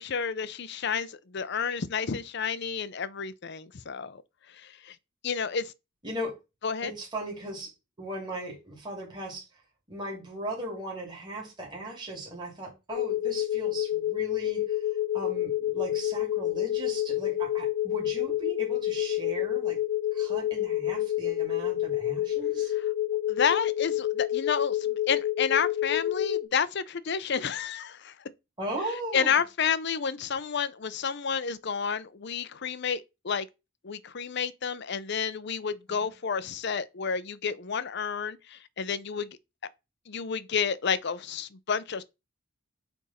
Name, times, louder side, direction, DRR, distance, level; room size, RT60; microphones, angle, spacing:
voice 1, 0.0-4.2 4.5-5.0 5.2-5.7 6.6-6.9 22.7-22.9 23.3-28.1 29.1-33.5 33.8-39.4 40.1-42.0, left 6 dB, 55° left, 0.6 m, -30 dB
voice 2, 6.0-6.4 6.8-7.7 8.0-9.4 9.9-14.8 15.1-19.8 20.1-22.7 28.6-29.4 35.9-36.1, right 1 dB, 20° right, 3.0 m, -38 dB
sound 1, 12.9-26.4, left 13 dB, 90° left, 0.9 m, -29 dB
8.5 x 3.6 x 4.2 m
head